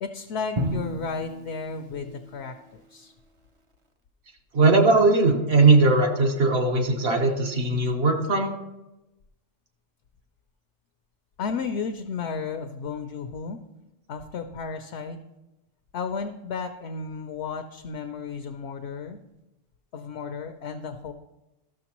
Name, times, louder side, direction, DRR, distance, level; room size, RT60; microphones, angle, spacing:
voice 1, 0.0-3.1 11.4-13.6 14.1-15.2 15.9-19.2 19.9-21.1, left 5 dB, 65° left, 6 dB, 0.7 m, -33 dB
Drum, 0.6-2.6, equal, 35° right, 0.5 m, -32 dB
voice 2, 4.5-8.5, right 3 dB, 55° right, 2 dB, 1.2 m, -19 dB
13.0 x 6.4 x 2.9 m, 0.97 s
omnidirectional pair, 1.4 m